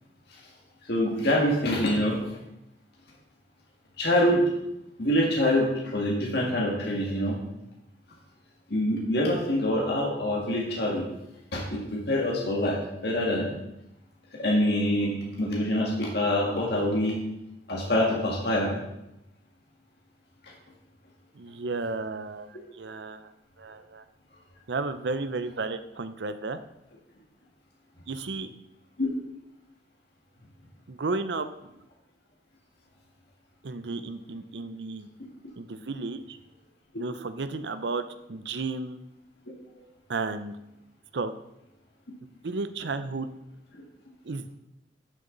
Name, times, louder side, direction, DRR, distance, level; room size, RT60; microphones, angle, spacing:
voice 1, 0.9-2.2 4.0-4.4 5.0-7.4 8.7-11.1 11.5-13.5 14.4-17.2 17.7-18.7 29.0-29.1 39.8-39.9, left 1 dB, 65° left, -2 dB, 1.9 m, -25 dB
voice 2, 21.3-23.3 23.6-24.0 24.7-26.6 28.1-28.5 30.9-31.5 33.6-35.1 35.6-36.4 37.0-38.0 38.3-39.0 40.1-40.5 41.1-41.3 42.4-43.3 44.2-44.5, right 3 dB, 75° right, 11 dB, 0.6 m, -33 dB
11.0 x 6.8 x 4.0 m, 0.87 s
head